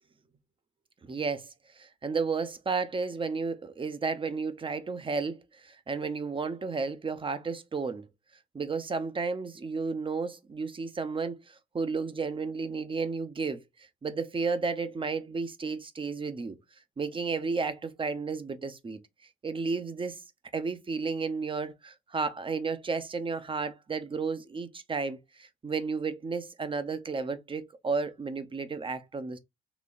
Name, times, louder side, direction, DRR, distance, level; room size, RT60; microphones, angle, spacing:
voice 1, 1.0-1.5 1.8-8.1 8.5-13.6 14.0-16.6 17.0-19.0 19.4-20.2 20.5-29.4, right 4 dB, 30° right, 0.7 m, -32 dB
4.0 x 2.9 x 2.4 m
cardioid pair, 80°, 19 cm